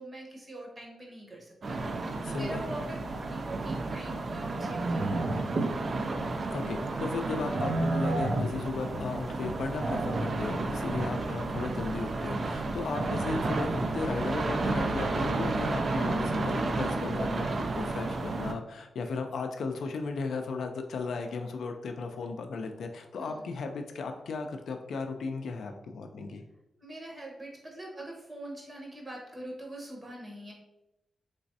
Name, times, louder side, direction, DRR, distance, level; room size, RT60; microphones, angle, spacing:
voice 1, 0.0-5.4 23.1-23.5 26.8-30.5, right 1 dB, 30° right, -2 dB, 1.0 m, -43 dB
sound 1, 1.6-18.5, right 2 dB, 50° right, 0.3 m, -31 dB
voice 2, 2.2-2.6 6.5-26.4, left 4 dB, 75° left, 5 dB, 0.3 m, -35 dB
3.3 x 3.0 x 2.7 m, 0.94 s
cardioid pair, 80°, 0 cm